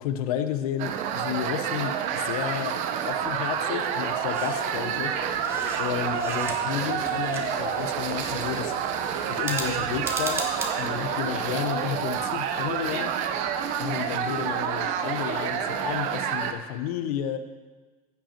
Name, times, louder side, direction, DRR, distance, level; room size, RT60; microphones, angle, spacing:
voice 1, 0.0-5.5 5.8-8.8 9.3-10.5 10.8-13.2 13.8-17.4, left 10 dB, 75° left, 10 dB, 0.9 m, -32 dB
sound 1, 0.8-16.5, right 8 dB, 40° right, 0.6 m, -28 dB
sound 2, 2.9-16.3, left 2 dB, 30° left, 2.2 m, -42 dB
sound 3, 4.3-4.7 5.1-6.8 7.0-7.9 9.4-10.7, right 2 dB, 15° right, 1.0 m, -36 dB
15.0 x 5.5 x 4.4 m, 1.3 s
supercardioid pair, 155°, 19 cm